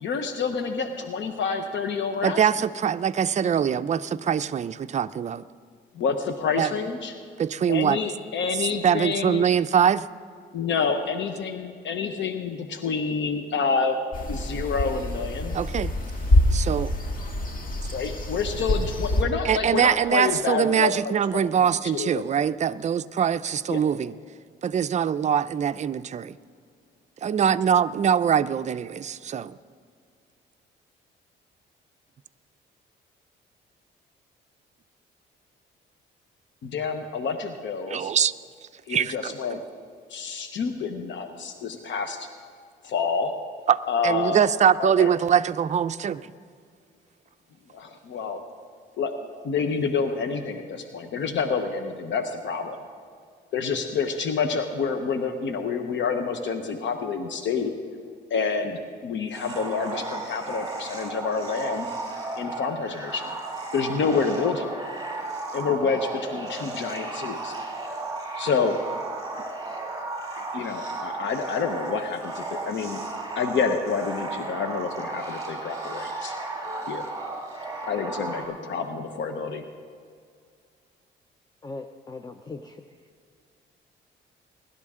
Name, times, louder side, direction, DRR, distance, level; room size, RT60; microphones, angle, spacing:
voice 1, 0.0-2.4 5.9-7.1 7.7-9.4 10.5-14.0 14.3-15.6 17.9-20.9 21.3-21.5 21.9-22.2 23.7-23.9 36.6-38.1 38.9-39.6 40.1-42.2 42.8-43.3 43.9-44.4 44.8-45.1 47.7-48.4 49.0-49.1 49.4-52.8 53.5-57.7 58.3-61.9 62.4-63.3 63.7-64.7 65.5-67.5 68.4-68.8 70.5-73.0 73.4-76.3 76.6-77.1 77.8-79.6, left 5 dB, 70° left, 7 dB, 1.0 m, -28 dB
voice 2, 2.2-5.4 6.6-6.7 7.4-8.0 8.6-10.1 15.5-15.9 16.5-16.9 19.4-24.1 24.6-26.4 27.2-29.6 37.9-38.3 38.9-39.6 43.7-46.3, right 8 dB, 35° right, 12 dB, 0.4 m, -23 dB
sound 1, 14.1-19.2, left 1 dB, 45° left, 1.8 m, -25 dB
sound 2, 59.3-78.4, right 3 dB, 20° right, 3.7 m, -34 dB
voice 3, 81.6-82.8, left 3 dB, 20° left, 7 dB, 0.6 m, -39 dB
20.5 x 11.5 x 3.7 m, 2.2 s
cardioid pair, 90°, 20 cm